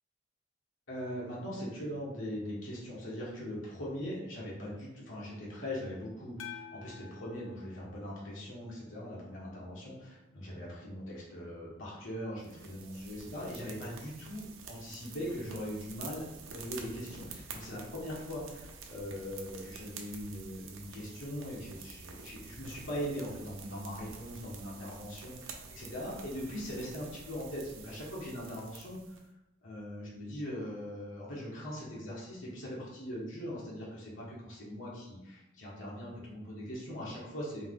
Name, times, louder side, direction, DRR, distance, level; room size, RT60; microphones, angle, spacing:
voice 1, 0.9-29.2 29.6-37.7, equal, 70° left, -6 dB, 1.4 m, -41 dB
sound 1, 6.4-8.8, left 8 dB, 85° left, 0.5 m, -49 dB
sound 2, 12.4-29.2, right 4 dB, 85° right, 0.7 m, -49 dB
4.4 x 2.8 x 3.8 m, 0.94 s
head